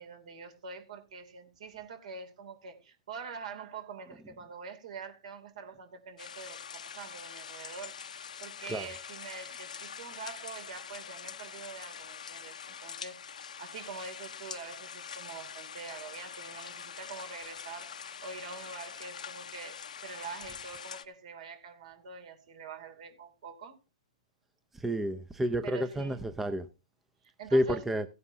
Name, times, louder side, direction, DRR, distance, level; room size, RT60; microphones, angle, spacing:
voice 1, 0.0-23.8 25.6-26.2 27.2-27.9, right 5 dB, 70° right, 2.6 m, -45 dB
sound 1, 6.2-21.0, left 7 dB, 85° left, 0.8 m, -44 dB
voice 2, 24.8-26.7 27.5-28.0, equal, 5° right, 0.5 m, -29 dB
16.5 x 9.5 x 2.7 m
hypercardioid pair, 140°, 4 cm